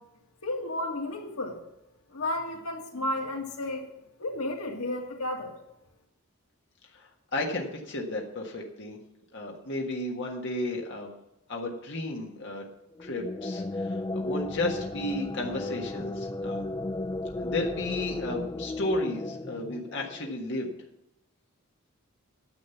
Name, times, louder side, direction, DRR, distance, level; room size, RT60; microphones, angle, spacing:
voice 1, 0.4-1.6 2.1-3.9 4.2-5.5, left 1 dB, 90° left, 2 dB, 2.0 m, -32 dB
voice 2, 6.9-9.0 9.3-11.1 11.5-12.6 13.0-16.6 17.3-20.7, left 2 dB, 55° left, 0 dB, 1.6 m, -33 dB
sound 1, 13.0-20.4, left 2 dB, 20° left, 0.3 m, -34 dB
10.5 x 7.4 x 7.1 m, 0.88 s
head